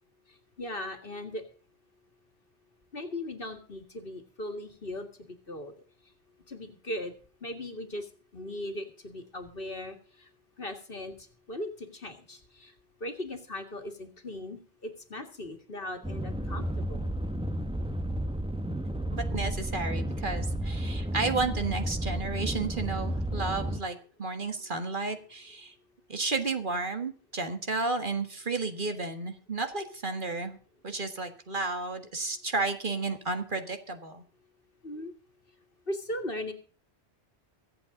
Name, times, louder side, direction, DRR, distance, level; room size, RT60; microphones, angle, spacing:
voice 1, 0.6-1.4 2.9-5.7 6.5-7.2 7.4-8.1 8.3-10.3 10.6-12.7 13.0-17.1 34.8-35.1 35.9-36.5, left 1 dB, 55° left, 6 dB, 2.2 m, -38 dB
sound 1, 16.0-23.8, right 1 dB, 5° right, 0.8 m, -32 dB
voice 2, 19.1-25.7 26.1-30.6 30.8-34.2, right 3 dB, 50° right, 7 dB, 1.8 m, -32 dB
24.0 x 8.4 x 3.8 m, 0.41 s
omnidirectional pair, 1.2 m